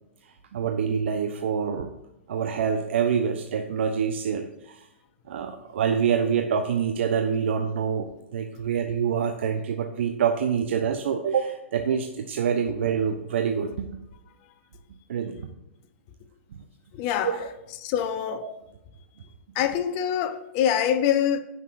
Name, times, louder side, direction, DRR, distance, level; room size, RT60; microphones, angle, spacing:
voice 1, 0.2-1.9 2.3-4.9 5.3-13.9 15.1-15.5 17.2-17.5 18.4-18.5, right 7 dB, 65° right, 0.8 m, -26 dB
voice 2, 16.9-17.3 17.8-18.5 19.5-21.4, left 9 dB, 40° left, 0.9 m, -24 dB
15.5 x 6.2 x 2.6 m
figure-of-eight pair, 110°, 7 cm